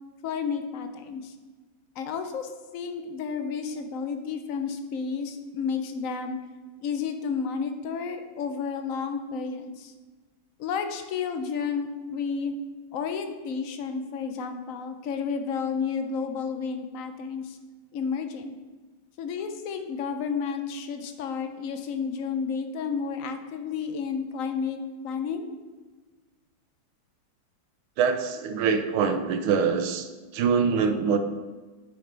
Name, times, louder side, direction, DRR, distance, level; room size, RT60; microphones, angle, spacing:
voice 1, 0.2-1.3 2.0-6.4 6.8-9.9 10.6-12.5 12.9-17.6 17.9-18.6 19.2-25.5, left 6 dB, 70° left, 7 dB, 0.7 m, -31 dB
voice 2, 28.0-31.2, right 6 dB, 90° right, 7 dB, 1.6 m, -24 dB
9.0 x 8.0 x 3.4 m, 1.3 s
omnidirectional pair, 2.2 m